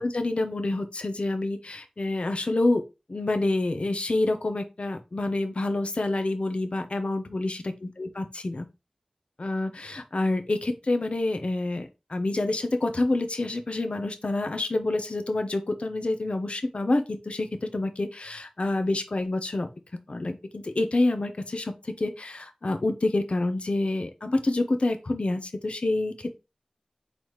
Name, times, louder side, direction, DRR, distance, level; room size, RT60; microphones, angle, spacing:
voice 1, 0.0-2.8 3.1-8.6 9.4-19.7 20.1-26.3, left 2 dB, 55° left, 7 dB, 0.7 m, -27 dB
4.0 x 3.3 x 3.1 m, 0.27 s
wide cardioid pair, 55°, 2 cm